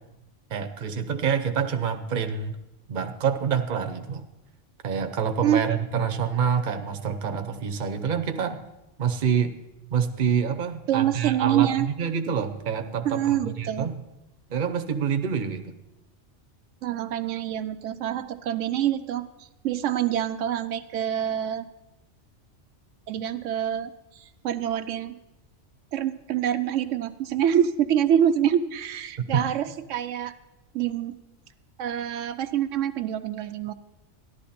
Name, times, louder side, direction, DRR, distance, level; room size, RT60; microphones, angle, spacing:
voice 1, 0.5-2.6 2.9-4.3 4.8-8.6 9.0-9.5 9.9-13.9 14.5-15.6 29.2-29.4, right 7 dB, 45° right, 8 dB, 0.9 m, -27 dB
voice 2, 10.9-11.9 13.0-13.9 16.8-21.7 23.1-25.2 25.9-30.3 30.7-31.2 31.8-33.7, right 10 dB, 85° right, 9 dB, 1.0 m, -26 dB
13.5 x 11.5 x 4.2 m, 0.95 s
omnidirectional pair, 1.2 m